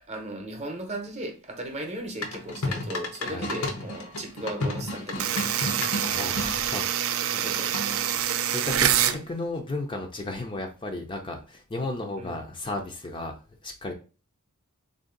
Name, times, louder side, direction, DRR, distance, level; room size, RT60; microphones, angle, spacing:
voice 1, 0.1-5.5 7.3-7.9 8.9-9.2 12.2-12.4, right 1 dB, 30° right, 0.8 m, -36 dB
sound 1, 2.2-6.5 7.7-8.2, left 2 dB, 80° left, 0.8 m, -32 dB
sound 2, 5.2-9.2, right 10 dB, 65° right, 0.4 m, -26 dB
voice 2, 6.0-7.5 8.4-13.4 13.6-13.9, left 2 dB, 20° left, 0.5 m, -34 dB
3.7 x 2.6 x 3.7 m
head